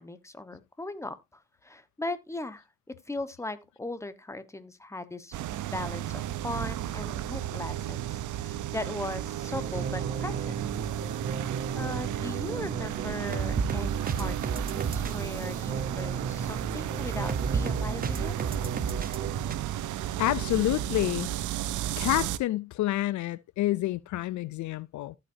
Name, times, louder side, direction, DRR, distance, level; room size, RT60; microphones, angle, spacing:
voice 1, 0.0-10.6 11.7-18.6, left 2 dB, 10° left, 1.2 m, -39 dB
sound 1, 5.3-22.4, right 12 dB, 75° right, 0.7 m, -34 dB
sound 2, 9.4-19.6, right 5 dB, 30° right, 0.8 m, -33 dB
voice 2, 20.2-21.3 22.0-25.2, left 16 dB, 70° left, 0.5 m, -28 dB
15.0 x 5.9 x 2.7 m
cardioid pair, 90°, 30 cm